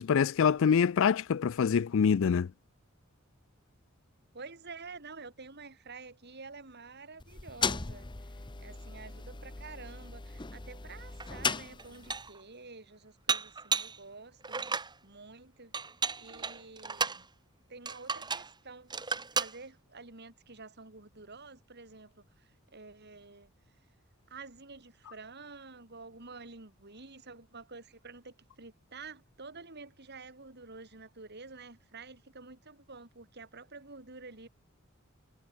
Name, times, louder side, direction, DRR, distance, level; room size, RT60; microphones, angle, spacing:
voice 1, 0.0-2.5, left 7 dB, 65° left, 0.4 m, -25 dB
voice 2, 4.3-8.1 8.6-15.7 16.1-17.3 17.7-18.9 19.3-23.5 24.3-34.5, right 4 dB, 50° right, 3.5 m, -49 dB
sound 1, 7.2-12.3, left 5 dB, 20° left, 0.9 m, -37 dB
Dishes pots and pans, 11.2-11.3 11.8-12.4 13.3-14.0 14.4-14.9 15.7-17.2 17.9-18.5 18.9-19.6, right 5 dB, 20° right, 2.5 m, -33 dB
head